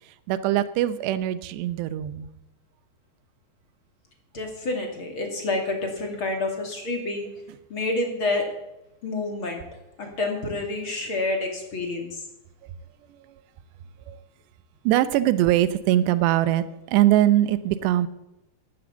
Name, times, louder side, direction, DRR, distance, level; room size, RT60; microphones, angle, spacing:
voice 1, 0.3-2.3 14.1-14.2 14.9-16.6 16.9-18.1, right 13 dB, 85° right, 14 dB, 3.0 m, -21 dB
voice 2, 4.3-7.3 7.7-8.5 9.0-9.6 10.0-12.2, left 2 dB, 35° left, 3 dB, 2.7 m, -28 dB
15.5 x 11.5 x 7.1 m, 0.91 s
omnidirectional pair, 4.8 m